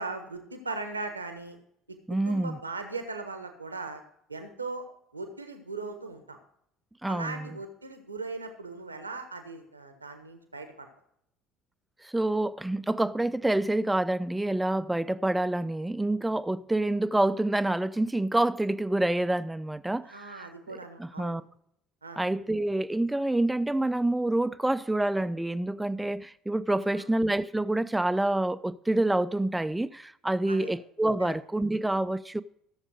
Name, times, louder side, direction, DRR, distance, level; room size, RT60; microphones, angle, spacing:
voice 1, 0.0-1.6 2.1-4.0 4.3-4.9 5.1-6.4 7.1-10.9 20.0-21.4 22.0-22.2 26.9-27.1 30.5-30.8 31.2-31.3, right 3 dB, 85° right, 1.3 m, -39 dB
voice 2, 2.1-2.6 7.0-7.5 12.1-20.3 21.0-21.4 22.2-32.4, right 1 dB, 10° right, 0.5 m, -27 dB
14.5 x 7.3 x 5.1 m
figure-of-eight pair, 60°, 0 cm